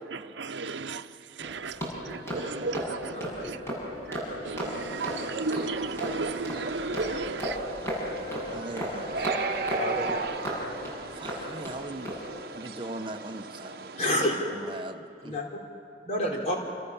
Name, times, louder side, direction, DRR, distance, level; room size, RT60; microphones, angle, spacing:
voice 1, 0.0-7.6, right 3 dB, 85° right, 0.8 m, -35 dB
sound 1, 1.4-11.7 12.0-12.3, equal, 15° left, 7.6 m, -35 dB
Wind instrument woodwind instrument, 2.9-7.4 8.0-11.7, left 1 dB, 65° left, 3.6 m, -46 dB
voice 2, 3.1-3.5 9.7-10.3 14.0-14.4 15.2-15.6 16.1-16.6, left 1 dB, 40° left, 3.9 m, -29 dB
sound 2, 4.9-14.1, right 4 dB, 55° right, 1.1 m, -37 dB
voice 3, 8.5-9.3 11.1-12.1 12.5-13.9 14.6-15.3, right 1 dB, 25° right, 1.1 m, -40 dB
29.0 x 27.0 x 7.2 m
head